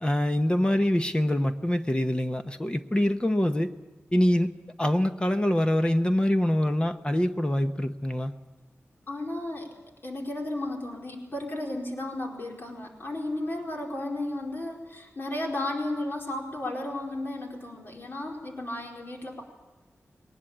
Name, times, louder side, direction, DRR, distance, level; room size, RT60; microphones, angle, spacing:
voice 1, 0.0-3.7 4.1-8.3, left 1 dB, 20° left, 8 dB, 1.0 m, -25 dB
voice 2, 9.1-9.7 10.0-19.4, left 1 dB, 45° left, 0 dB, 4.6 m, -34 dB
21.5 x 19.5 x 8.8 m, 1.2 s
wide cardioid pair, 100°, 5 cm